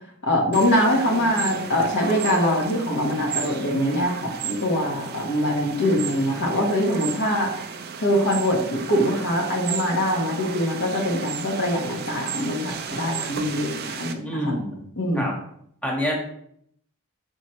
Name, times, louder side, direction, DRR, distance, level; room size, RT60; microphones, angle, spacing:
voice 1, 0.2-7.5 8.0-14.5 15.0-15.2, equal, 55° left, -1 dB, 1.3 m, -23 dB
sound 1, 0.5-14.1, right 6 dB, 45° right, 0.6 m, -34 dB
voice 2, 14.2-14.9 15.1-15.3 15.8-16.1, equal, 5° left, -2 dB, 1.4 m, -26 dB
6.1 x 5.2 x 3.1 m, 0.69 s
head